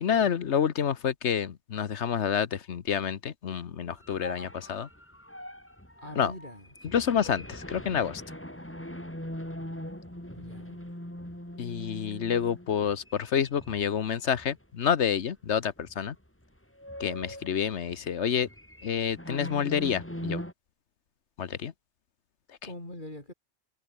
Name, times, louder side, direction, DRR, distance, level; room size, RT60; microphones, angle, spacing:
voice 1, 0.0-4.9 6.2-6.3 6.9-8.2 11.6-16.1 17.0-18.5 18.8-20.4 21.4-21.7, left 8 dB, 85° left, 1.3 m, -28 dB
sound 1, 3.9-14.6 15.0-15.2 15.8-16.2 16.4-20.5, equal, 10° left, 4.2 m, -42 dB
voice 2, 6.0-6.7 10.4-10.8 22.6-23.3, left 1 dB, 45° left, 6.6 m, -43 dB
omnidirectional pair, 1.1 m